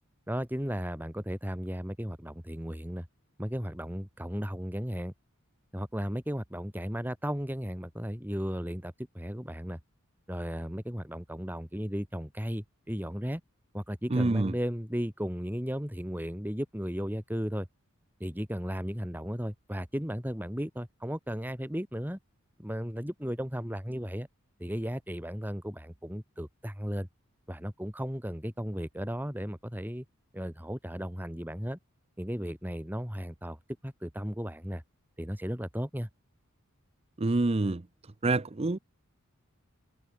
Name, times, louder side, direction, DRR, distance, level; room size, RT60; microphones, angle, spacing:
voice 1, 0.3-3.1 3.4-5.1 5.7-9.8 10.3-13.4 13.7-17.7 18.2-22.2 22.6-24.3 24.6-27.1 27.5-30.0 30.3-31.8 32.2-34.8 35.2-36.1, equal, 10° right, 5.1 m, -35 dB
voice 2, 14.1-14.5 37.2-37.8 38.2-38.8, right 2 dB, 30° right, 0.6 m, -26 dB
head